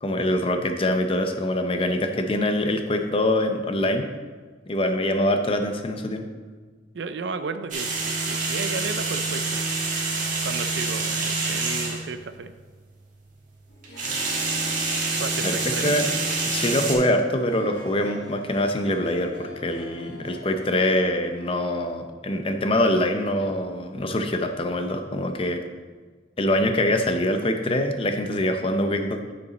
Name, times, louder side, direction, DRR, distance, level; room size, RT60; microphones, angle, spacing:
voice 1, 0.0-4.1 4.7-6.2 15.4-16.1 16.5-25.6 26.4-29.2, left 1 dB, 30° left, 6 dB, 0.6 m, -24 dB
voice 2, 6.9-9.7 10.1-12.5 15.2-16.0, right 4 dB, 70° right, 10 dB, 0.5 m, -34 dB
sound 1, 7.7-12.0 13.8-16.9, right 3 dB, 45° right, 1.5 m, -27 dB
Harp, 13.7-21.6, left 1 dB, 80° left, 1.5 m, -44 dB
9.4 x 5.2 x 4.1 m, 1.4 s
head